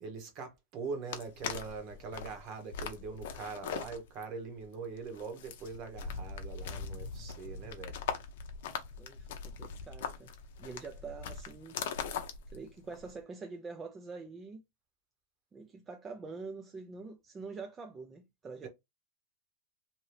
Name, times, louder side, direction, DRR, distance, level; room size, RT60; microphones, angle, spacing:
voice 1, 0.0-7.9 18.6-18.7, right 4 dB, 35° right, 1.0 m, -42 dB
sound 1, 1.1-13.2, left 6 dB, 65° left, 0.6 m, -41 dB
voice 2, 7.2-7.7 9.0-10.3 10.6-11.8 12.5-14.6 15.5-18.7, right 4 dB, 15° right, 0.4 m, -45 dB
2.7 x 2.6 x 3.2 m
supercardioid pair, 150°, 0 cm